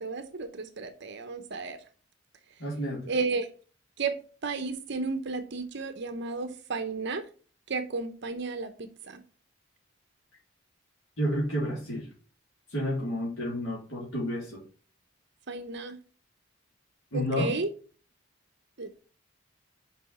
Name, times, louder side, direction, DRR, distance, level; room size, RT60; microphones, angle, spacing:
voice 1, 0.0-1.8 3.1-3.5 4.0-4.1 4.4-7.2 7.7-9.2 15.5-16.0 17.1-17.7 18.8-19.0, right 4 dB, 60° right, 0.8 m, -33 dB
voice 2, 2.6-3.1 11.2-12.1 12.7-14.6 17.1-17.5, equal, 85° left, 3.0 m, -30 dB
6.1 x 5.5 x 4.2 m
head